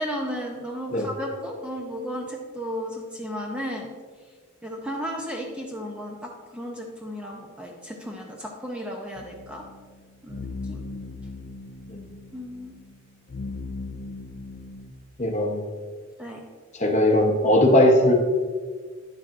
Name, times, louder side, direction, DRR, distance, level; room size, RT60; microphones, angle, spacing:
voice 1, 0.0-3.9 4.6-9.6 10.2-10.8 12.3-12.7 16.2-16.4, equal, 5° right, 0 dB, 0.6 m, -34 dB
sound 1, 9.1-14.9, left 3 dB, 50° left, 0.4 m, -38 dB
voice 2, 15.2-15.6 16.7-18.1, left 1 dB, 30° left, 2 dB, 0.8 m, -19 dB
9.8 x 7.2 x 2.5 m, 1.5 s
head